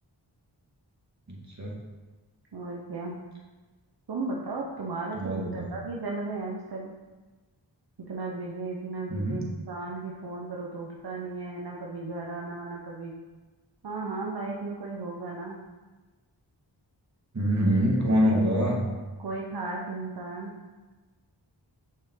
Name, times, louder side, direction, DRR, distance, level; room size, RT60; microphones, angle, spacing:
voice 1, 1.3-1.8 5.1-5.7 9.1-9.4 17.3-18.9, equal, 40° right, -3 dB, 1.9 m, -25 dB
voice 2, 2.5-3.2 4.1-6.9 8.1-13.2 13.8-15.6 18.2-18.3 19.2-20.6, right 3 dB, 55° right, -2 dB, 0.9 m, -35 dB
6.1 x 5.7 x 3.8 m, 1.2 s
cardioid pair, 45°, 45 cm